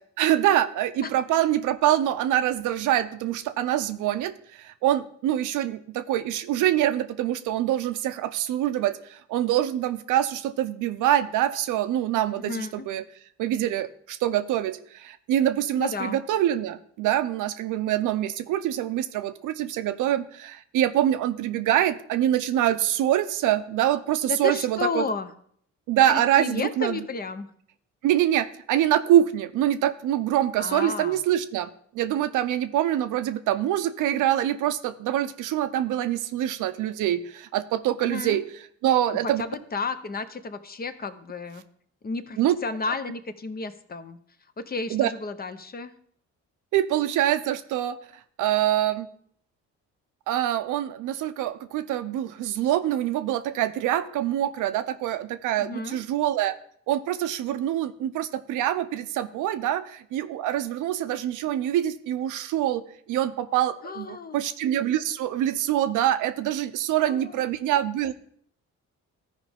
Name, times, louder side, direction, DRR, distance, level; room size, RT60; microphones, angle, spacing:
voice 1, 0.2-13.0 13.4-25.0 25.9-27.0 28.0-31.7 31.9-38.4 38.8-39.4 42.4-42.6 44.9-45.1 46.7-48.0 48.4-49.1 50.3-56.5 56.9-62.8 63.1-68.1, right 12 dB, 85° right, 11 dB, 0.6 m, -25 dB
voice 2, 12.4-12.9 15.8-16.2 24.3-25.3 26.1-27.5 30.6-31.2 38.0-38.4 39.4-41.6 42.0-44.2 44.6-45.9 55.6-56.0 63.8-64.4 67.1-67.5, left 4 dB, 30° left, 11 dB, 0.7 m, -32 dB
13.0 x 5.0 x 3.5 m, 0.63 s
cardioid pair, 90°, 30 cm